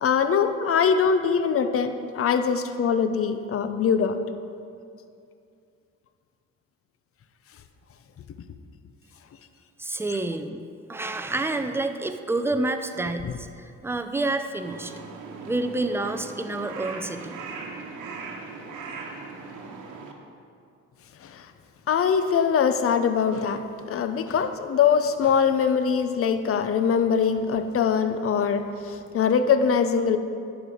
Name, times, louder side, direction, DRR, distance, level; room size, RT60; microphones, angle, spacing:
voice 1, 0.0-4.2 13.2-13.3 21.2-21.5 21.9-23.6 23.9-30.2, left 6 dB, 50° left, 9 dB, 0.6 m, -22 dB
voice 2, 9.8-10.6 10.9-14.9 15.5-17.4, right 2 dB, 10° right, 7 dB, 0.5 m, -28 dB
Crow, 14.6-20.1, right 4 dB, 85° right, 1.0 m, -39 dB
11.0 x 5.0 x 4.9 m, 2.4 s
cardioid pair, 90°, 30 cm